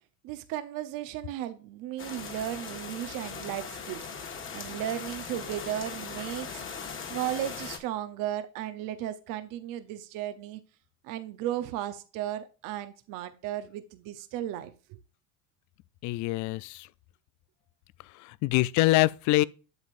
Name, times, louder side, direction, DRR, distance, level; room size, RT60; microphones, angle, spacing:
voice 1, 0.2-4.0 4.5-6.7 7.1-10.6 11.0-15.0, right 12 dB, 60° right, 0.8 m, -35 dB
sound 1, 2.0-7.8, left 5 dB, 35° left, 1.6 m, -39 dB
voice 2, 16.0-16.9 18.2-19.4, left 18 dB, 50° left, 0.4 m, -24 dB
8.0 x 7.3 x 2.5 m
supercardioid pair, 100°, 37 cm